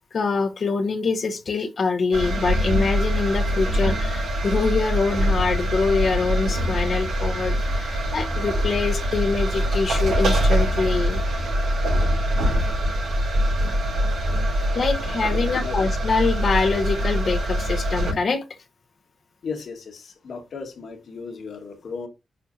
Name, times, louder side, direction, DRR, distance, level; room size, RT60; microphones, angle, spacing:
voice 1, 0.1-11.2 14.7-18.4, left 4 dB, 55° left, 1.0 m, -24 dB
sound 1, 2.1-18.1, equal, 90° right, 4.2 m, -23 dB
voice 2, 15.3-15.8 19.4-22.1, left 5 dB, 75° left, 1.7 m, -35 dB
10.5 x 4.3 x 2.8 m
cardioid pair, 70°, 0 cm